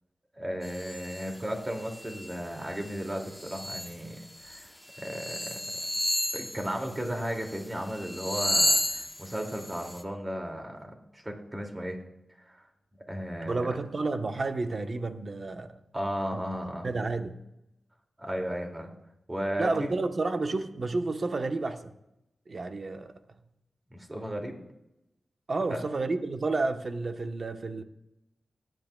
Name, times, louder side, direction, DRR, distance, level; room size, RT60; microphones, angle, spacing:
voice 1, 0.3-5.6 6.3-12.0 12.4-12.6 13.1-13.8 15.9-16.9 18.2-18.9 19.3-19.9 23.9-24.6, equal, 20° right, 2.4 m, -35 dB
sound 1, 0.6-1.3 1.8-2.4 2.7-3.9 4.5-4.6 4.9-7.6 7.9-10.0, left 1 dB, 10° left, 0.8 m, -32 dB
voice 2, 13.5-15.8 16.3-16.4 16.8-17.4 19.6-21.9 22.5-23.1 25.5-27.8, right 3 dB, 55° right, 1.0 m, -30 dB
19.5 x 9.2 x 2.3 m
cardioid pair, 60°, 0 cm